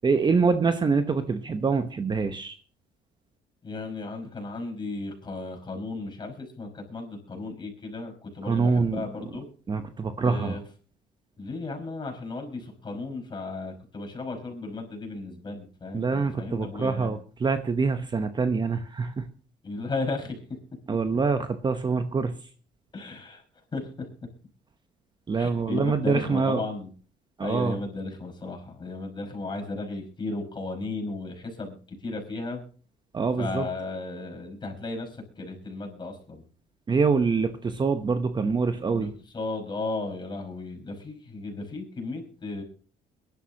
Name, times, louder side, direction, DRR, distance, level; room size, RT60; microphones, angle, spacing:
voice 1, 0.0-2.6 8.5-9.0 9.7-10.6 15.9-19.2 20.9-22.4 25.3-26.6 27.4-27.8 33.1-33.6 36.9-39.1, right 4 dB, 25° right, 9 dB, 0.9 m, -25 dB
voice 2, 3.6-9.5 10.2-10.6 11.4-17.2 19.6-20.4 22.9-23.4 23.7-24.1 25.4-26.9 27.4-32.6 33.4-36.4 38.9-42.6, left 3 dB, 25° left, 2 dB, 5.3 m, -35 dB
22.5 x 11.5 x 2.9 m, 0.40 s
cardioid pair, 110°, 17 cm